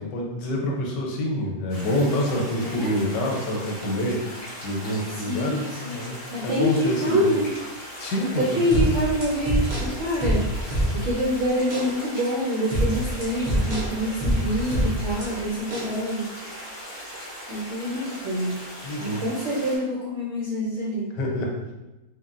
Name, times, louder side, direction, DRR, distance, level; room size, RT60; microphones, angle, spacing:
voice 1, 0.0-7.3 8.0-8.5 8.7-8.9 18.8-19.2 21.1-21.5, left 1 dB, 90° left, 0 dB, 1.3 m, -27 dB
sound 1, 1.7-19.8, equal, 35° left, 0.6 m, -39 dB
voice 2, 2.6-3.0 5.1-6.0 6.3-7.5 8.4-16.3 17.5-18.6 19.0-21.1, equal, 65° right, -5 dB, 0.7 m, -26 dB
sound 2, 8.7-11.2 11.7-11.9 12.7-15.3 15.7-15.9, equal, 85° right, 0.4 m, -25 dB
3.5 x 2.2 x 2.4 m, 1.0 s
omnidirectional pair, 1.8 m